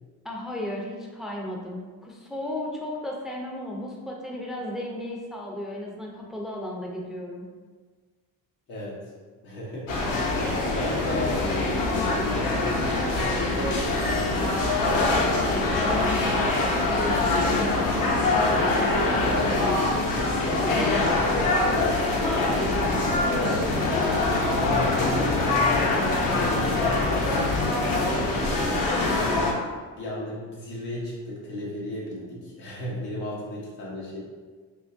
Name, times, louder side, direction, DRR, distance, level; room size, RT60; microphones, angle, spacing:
voice 1, 0.2-7.4 14.9-17.3, left 1 dB, ahead, -2 dB, 0.5 m, -34 dB
voice 2, 9.4-10.3 10.6-15.5 16.3-16.4 18.2-29.6 30.0-34.2, left 1 dB, 85° left, -6 dB, 1.2 m, -35 dB
sound 1, 9.9-29.5, left 2 dB, 55° left, 0.8 m, -24 dB
sound 2, 21.7-28.2, right 1 dB, 65° right, 0.9 m, -40 dB
3.6 x 2.9 x 2.6 m, 1.5 s
cardioid pair, 75°, 39 cm